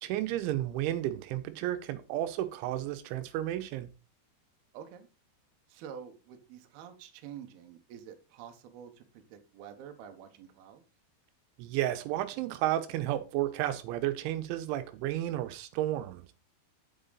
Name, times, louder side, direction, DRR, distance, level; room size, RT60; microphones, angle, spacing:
voice 1, 0.0-3.9 11.6-16.3, right 13 dB, 90° right, 3.3 m, -32 dB
voice 2, 4.7-5.1 5.7-10.8, right 8 dB, 70° right, 2.6 m, -48 dB
8.1 x 7.3 x 3.9 m
omnidirectional pair, 5.3 m